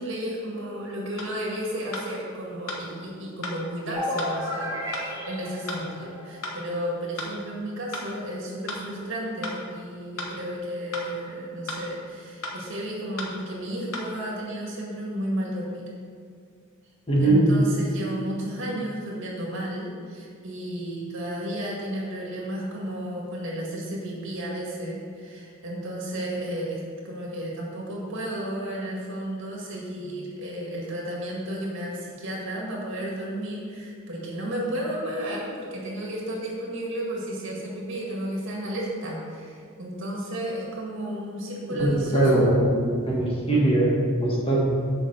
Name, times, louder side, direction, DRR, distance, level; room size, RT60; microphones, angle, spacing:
voice 1, 0.0-15.8 17.2-42.5, right 1 dB, 60° right, -3 dB, 2.0 m, -33 dB
sound 1, 1.2-1.3 1.9-2.1 2.7-2.8 3.4-3.6 4.2-4.3 4.9-5.1 5.7-5.8 6.4-6.6 7.2-7.3 7.9-8.1 8.7-8.8 9.4-9.6 10.2-10.3 10.9-11.1 11.7-11.8 12.4-12.6 13.2-13.3 13.9-14.1, left 2 dB, 75° left, 1.2 m, -34 dB
sound 2, 3.9-6.7, equal, 15° right, 1.8 m, -33 dB
voice 2, 17.1-17.5 41.7-44.8, right 1 dB, 25° left, -3 dB, 1.5 m, -21 dB
7.3 x 5.1 x 6.5 m, 2.2 s
head